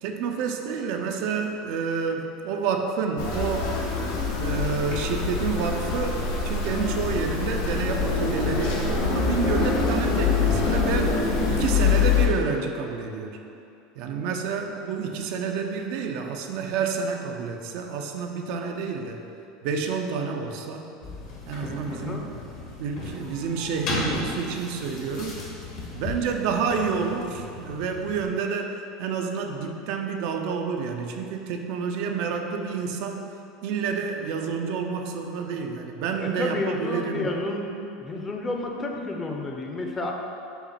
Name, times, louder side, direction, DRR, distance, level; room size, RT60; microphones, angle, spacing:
voice 1, 0.0-3.7 4.3-11.1 11.5-13.4 14.0-19.2 19.6-20.9 21.5-22.2 22.8-25.4 25.9-33.2 33.6-37.3, right 5 dB, 65° right, 3 dB, 0.4 m, -29 dB
sound 1, 3.2-12.3, left 5 dB, 75° left, 0.7 m, -24 dB
sound 2, 21.0-28.3, left 2 dB, 55° left, 1.0 m, -36 dB
voice 2, 21.9-22.2 36.2-37.7 38.0-40.1, left 2 dB, 25° left, 1 dB, 0.5 m, -30 dB
5.6 x 2.1 x 4.1 m, 2.7 s
hypercardioid pair, 95°, 0 cm